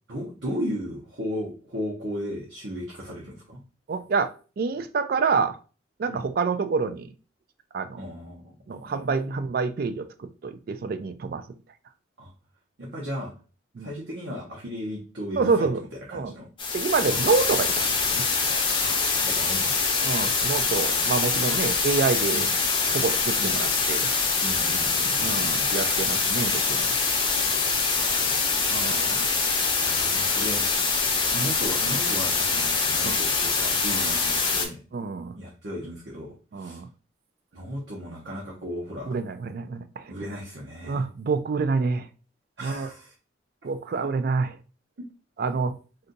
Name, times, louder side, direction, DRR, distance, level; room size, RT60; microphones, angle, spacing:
voice 1, 0.1-3.6 6.1-6.3 8.0-8.5 9.0-9.4 12.2-12.3 12.8-13.3 13.8-15.7 16.1-16.5 17.1-17.3 18.8-19.0 19.2-20.0 22.3-22.5 23.4-23.6 24.4-25.7 27.9-29.0 29.8-30.6 31.3-34.8 35.3-36.8 37.5-39.1 40.1-41.0 42.6-43.1, equal, 70° right, 0.8 m, -36 dB
voice 2, 3.9-5.6 6.0-7.1 7.7-8.0 8.7-11.4 13.8-13.9 15.4-15.8 16.1-16.3 16.7-17.8 18.1-18.3 20.0-22.5 22.9-24.1 25.2-27.0 28.7-29.3 31.3-31.5 33.0-33.2 34.9-35.3 36.5-36.9 39.1-40.1 40.8-42.1 42.6-42.9 43.6-44.6 45.4-45.8, right 4 dB, 50° right, 0.3 m, -27 dB
sound 1, 16.6-34.7, left 4 dB, 25° left, 0.6 m, -24 dB
2.6 x 2.4 x 3.9 m
head